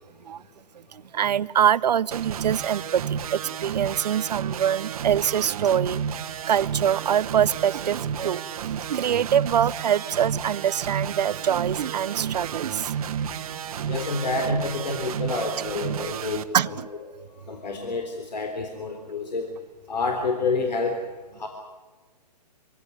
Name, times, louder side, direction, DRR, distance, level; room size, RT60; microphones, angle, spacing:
voice 1, 0.9-6.0 6.4-12.9 16.5-16.9, right 9 dB, 75° right, 0.7 m, -24 dB
sound 1, 2.1-16.4, right 8 dB, 60° right, 1.3 m, -31 dB
voice 2, 13.9-16.8 17.2-19.5 19.9-21.0 21.4-21.5, left 3 dB, 85° left, 3.7 m, -28 dB
25.0 x 17.0 x 9.6 m
hypercardioid pair, 145°, 21 cm